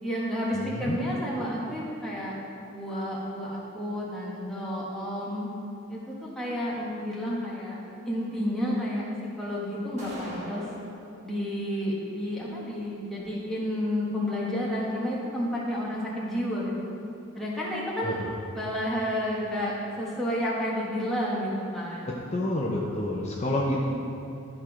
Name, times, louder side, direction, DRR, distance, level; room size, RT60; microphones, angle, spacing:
voice 1, 0.0-2.3 2.7-5.5 5.9-7.8 8.0-9.1 9.4-10.6 11.2-16.7 17.3-18.2 18.5-22.1, equal, ahead, -7 dB, 1.3 m, -31 dB
voice 2, 0.5-1.0 18.0-18.1 22.3-23.9, left 1 dB, 30° left, -4 dB, 0.7 m, -28 dB
sound 1, 10.0-11.0, equal, 35° right, 1.1 m, -40 dB
11.5 x 4.5 x 4.9 m, 2.7 s
head